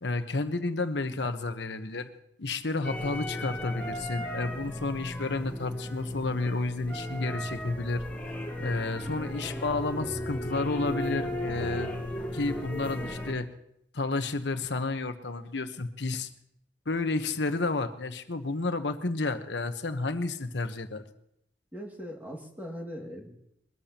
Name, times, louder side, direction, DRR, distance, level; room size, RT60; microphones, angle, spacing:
voice 1, 0.0-2.1 2.4-8.0 8.6-11.9 12.3-13.5 13.9-16.3 16.9-21.0, left 3 dB, 75° left, 8 dB, 1.1 m, -31 dB
sound 1, 2.8-13.3, left 1 dB, 10° left, 2.1 m, -35 dB
voice 2, 21.7-23.3, equal, 10° right, 0 dB, 2.3 m, -40 dB
22.5 x 13.5 x 2.9 m, 0.76 s
head